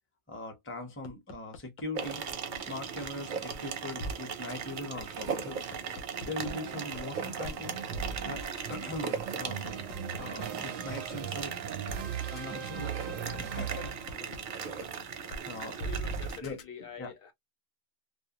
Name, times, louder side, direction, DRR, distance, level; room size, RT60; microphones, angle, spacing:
voice 1, 0.3-2.2 2.7-5.6 6.2-7.8 8.2-9.9 10.2-11.6 12.3-12.9 13.2-14.4 15.4-15.8 16.4-16.6 17.0-17.1, left 2 dB, 15° left, 0.6 m, -41 dB
sound 1, 1.0-2.6 3.0-3.1 3.5-3.6 4.0-4.1 4.5-4.6 5.0-6.5 6.9-7.0 7.4-7.6 7.9-10.4 10.9-11.0 11.4-11.5 11.9-12.0 12.4-12.5 12.8-14.4 14.8-14.9 15.3-15.4 15.8-16.6, right 1 dB, 85° left, 1.0 m, -39 dB
sound 2, 1.9-16.4, right 6 dB, 55° right, 0.6 m, -38 dB
sound 3, 6.4-14.3, right 9 dB, 85° right, 1.0 m, -40 dB
voice 2, 15.8-17.3, left 5 dB, 55° left, 0.9 m, -45 dB
2.5 x 2.1 x 2.8 m
omnidirectional pair, 1.3 m